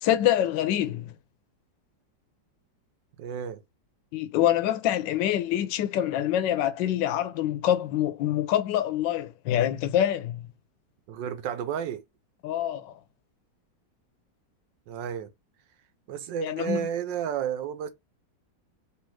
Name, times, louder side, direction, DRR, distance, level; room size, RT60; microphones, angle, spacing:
voice 1, 0.0-1.1 4.1-10.4 12.4-12.9 16.4-16.8, left 11 dB, 75° left, 1.3 m, -25 dB
voice 2, 3.2-3.6 11.1-12.0 14.9-15.3 16.1-17.9, right 8 dB, 80° right, 1.4 m, -31 dB
3.4 x 3.2 x 4.6 m
omnidirectional pair, 2.0 m